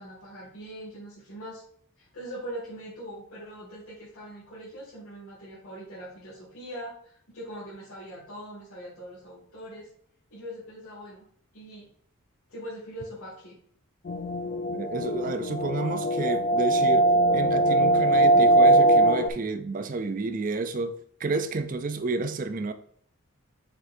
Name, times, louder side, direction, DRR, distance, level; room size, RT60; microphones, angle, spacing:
voice 1, 0.0-1.6 2.0-9.9 10.3-11.3 11.5-11.9 12.5-13.6, equal, 75° left, 2.5 m, -42 dB
sound 1, 14.1-19.3, right 2 dB, 40° left, 0.4 m, -21 dB
voice 2, 14.7-20.9 21.2-22.7, right 3 dB, 40° right, 0.4 m, -30 dB
6.2 x 5.7 x 2.7 m
head